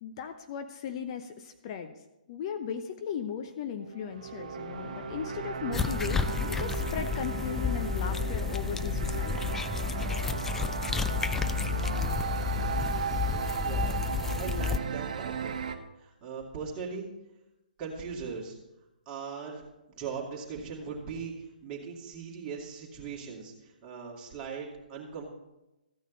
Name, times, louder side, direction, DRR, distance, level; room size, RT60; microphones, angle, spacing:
voice 1, 0.0-2.0 2.3-9.5, left 8 dB, 35° left, 7 dB, 0.7 m, -37 dB
sound 1, 3.8-15.8, right 6 dB, 50° right, 1.0 m, -35 dB
sound 2, 4.7-10.7, left 1 dB, 80° left, 3.5 m, -47 dB
sound 3, 5.7-14.8, left 6 dB, 5° left, 0.3 m, -31 dB
voice 2, 13.6-15.6 16.0-17.1 17.8-18.6 19.1-19.6 19.9-25.3, right 5 dB, 25° right, -3 dB, 2.6 m, -39 dB
14.5 x 9.2 x 4.0 m, 0.97 s
figure-of-eight pair, 130°, 5 cm